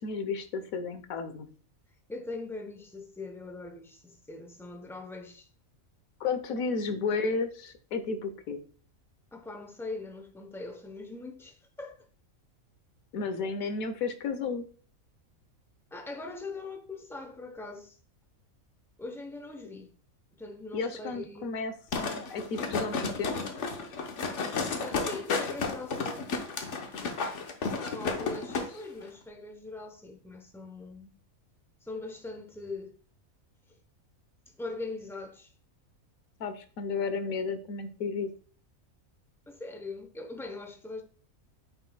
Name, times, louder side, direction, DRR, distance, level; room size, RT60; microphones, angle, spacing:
voice 1, 0.0-1.5 6.2-8.6 13.1-14.7 20.7-23.4 28.1-28.2 36.4-38.3, left 4 dB, 85° left, 1.3 m, -33 dB
voice 2, 2.1-5.5 9.3-12.1 15.9-18.0 19.0-19.9 20.4-21.5 24.8-26.3 27.9-31.1 31.8-33.0 34.5-35.5 39.5-41.0, left 3 dB, 5° left, 0.4 m, -41 dB
sound 1, 21.9-28.7 29.0-29.1, left 4 dB, 60° left, 1.2 m, -32 dB
9.2 x 5.1 x 2.2 m
omnidirectional pair, 1.4 m